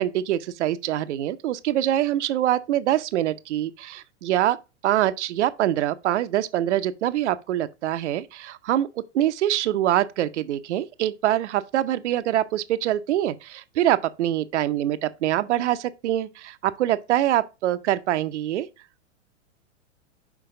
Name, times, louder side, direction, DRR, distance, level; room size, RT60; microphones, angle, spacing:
voice 1, 0.0-4.6 4.8-8.9 9.1-18.7, right 12 dB, 70° right, 0.7 m, -24 dB
5.9 x 4.8 x 3.6 m
hypercardioid pair, 115°, 36 cm